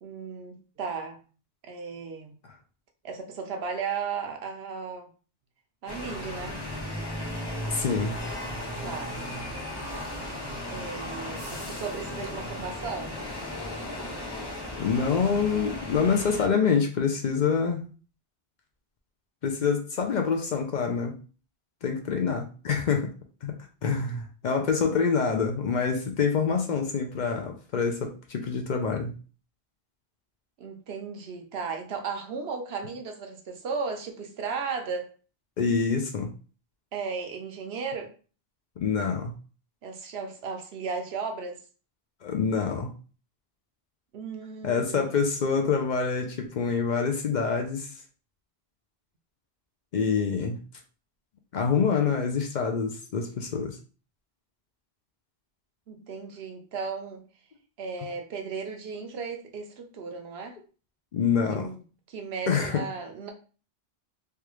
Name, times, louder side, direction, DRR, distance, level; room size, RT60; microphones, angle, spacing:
voice 1, 0.0-1.2 1.6-2.4 3.0-5.1 5.8-6.6 8.8-9.1 10.7-13.1 30.6-35.1 36.9-38.1 39.8-41.6 44.1-45.1 55.9-57.2 57.8-60.6 61.5-61.8 62.1-63.3, right 5 dB, 85° right, 0.9 m, -35 dB
sound 1, 5.9-16.5, left 1 dB, 25° left, 0.7 m, -35 dB
voice 2, 7.7-8.2 14.8-17.8 19.4-21.2 21.8-23.1 23.4-23.5 23.8-29.1 35.6-36.3 38.8-39.3 42.2-42.9 44.6-47.9 49.9-50.6 51.5-53.8 61.1-61.7 62.5-62.8, left 5 dB, 55° left, 0.6 m, -26 dB
3.3 x 2.4 x 3.0 m
omnidirectional pair, 1.0 m